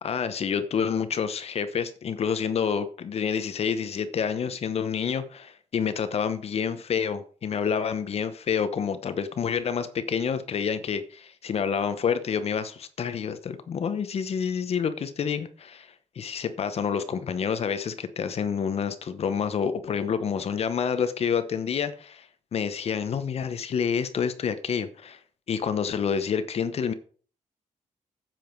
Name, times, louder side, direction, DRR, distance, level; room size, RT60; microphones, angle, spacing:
voice 1, 0.0-15.9 16.2-22.3 22.5-25.2 25.5-26.9, left 7 dB, 50° left, 0.9 m, -28 dB
10.0 x 7.7 x 4.6 m
wide cardioid pair, 150°, 13 cm